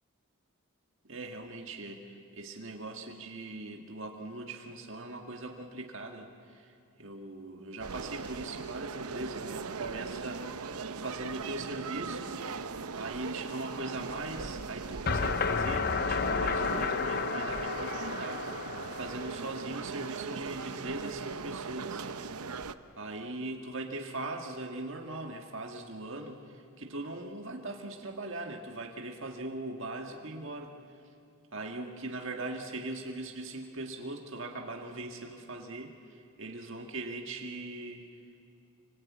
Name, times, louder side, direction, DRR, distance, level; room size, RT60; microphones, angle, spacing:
voice 1, 1.0-12.7 12.9-22.1 23.0-30.7 31.5-38.1, right 2 dB, 60° right, 2 dB, 1.8 m, -40 dB
sound 1, 7.8-22.7, right 5 dB, 85° right, 0.8 m, -39 dB
sound 2, 15.1-20.0, left 5 dB, 45° left, 0.7 m, -32 dB
26.5 x 24.5 x 8.5 m, 2.5 s
head